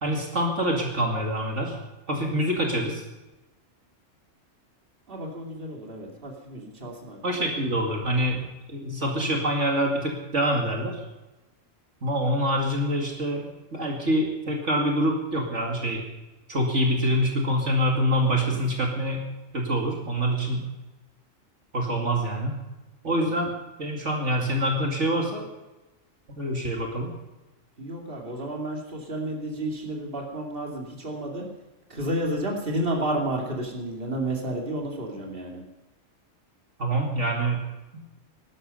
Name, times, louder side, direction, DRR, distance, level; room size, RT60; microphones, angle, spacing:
voice 1, 0.0-1.8 2.1-3.0 7.2-11.0 12.0-16.0 16.5-19.3 19.5-20.7 21.7-22.6 23.0-23.5 23.8-25.5 26.4-27.1 36.8-37.6, equal, 65° right, 0 dB, 2.7 m, -25 dB
voice 2, 5.1-7.5 18.4-18.6 23.2-23.5 27.8-31.5 31.9-35.6, right 1 dB, 45° right, 0 dB, 2.8 m, -31 dB
17.5 x 12.5 x 5.5 m, 1.1 s
omnidirectional pair, 1.3 m